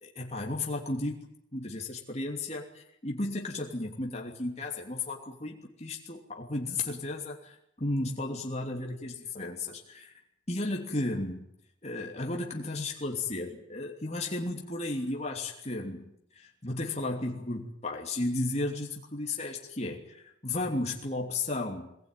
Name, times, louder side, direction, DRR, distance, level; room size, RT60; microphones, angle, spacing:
voice 1, 0.0-1.2 1.5-10.1 10.5-11.5 11.8-21.9, left 2 dB, 35° left, 0 dB, 2.9 m, -34 dB
23.0 x 20.0 x 9.3 m, 0.77 s
head